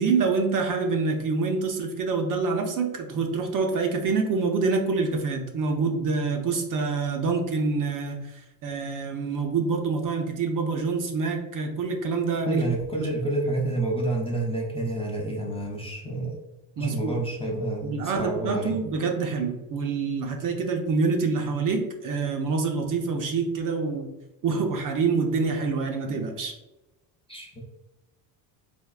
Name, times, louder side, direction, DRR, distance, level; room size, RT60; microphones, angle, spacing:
voice 1, 0.0-12.6 13.0-13.1 16.8-17.1 17.8-24.1 24.4-26.5, right 4 dB, 45° right, 3 dB, 0.5 m, -26 dB
voice 2, 12.5-16.4 16.8-18.8 27.3-27.6, right 2 dB, 10° left, -2 dB, 0.5 m, -29 dB
3.5 x 2.2 x 2.3 m, 0.98 s
supercardioid pair, 85°, 48 cm